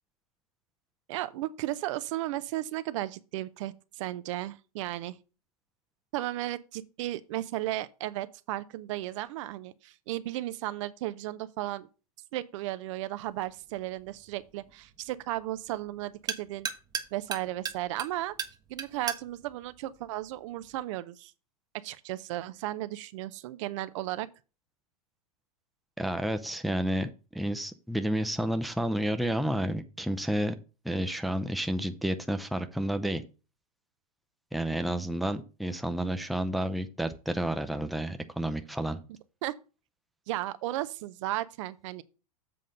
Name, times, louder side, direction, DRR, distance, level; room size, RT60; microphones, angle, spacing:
voice 1, 1.1-5.2 6.1-11.9 12.3-16.7 17.1-18.3 18.7-21.3 21.8-24.3 39.4-39.5 40.3-42.0, right 15 dB, 55° right, 0.6 m, -35 dB
sound 1, 13.2-20.8, right 7 dB, 20° right, 0.9 m, -40 dB
voice 2, 26.0-30.6 30.8-33.2 34.5-39.0, right 1 dB, ahead, 0.6 m, -30 dB
7.7 x 3.8 x 6.4 m
hypercardioid pair, 105°, 19 cm